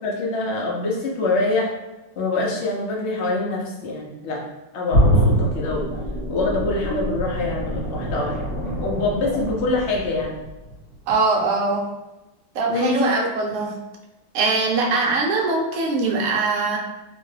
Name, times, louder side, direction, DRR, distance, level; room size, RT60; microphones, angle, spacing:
voice 1, 0.0-1.7 2.2-4.4 4.7-5.9 6.3-10.4 12.7-13.1, left 2 dB, 70° left, -2 dB, 0.6 m, -25 dB
sound 1, 4.9-10.7 11.1-11.2, equal, 25° right, 1.2 m, -24 dB
voice 2, 11.1-11.9 12.5-13.8 14.3-16.8, right 3 dB, 70° right, 0 dB, 0.8 m, -22 dB
2.9 x 2.2 x 3.2 m, 1.0 s
omnidirectional pair, 1.9 m